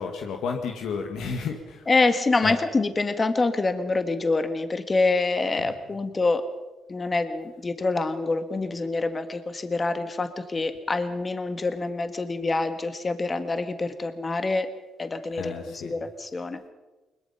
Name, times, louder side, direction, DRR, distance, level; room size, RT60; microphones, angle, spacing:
voice 1, 0.0-1.9 2.4-2.6 5.6-5.7 15.3-15.9, left 5 dB, 75° left, 4 dB, 1.9 m, -32 dB
voice 2, 1.9-6.4 6.9-14.7 15.0-15.6 15.8-16.7, left 3 dB, 30° left, 9 dB, 1.6 m, -26 dB
21.5 x 21.0 x 5.7 m, 1.1 s
cardioid pair, 90°, 0 cm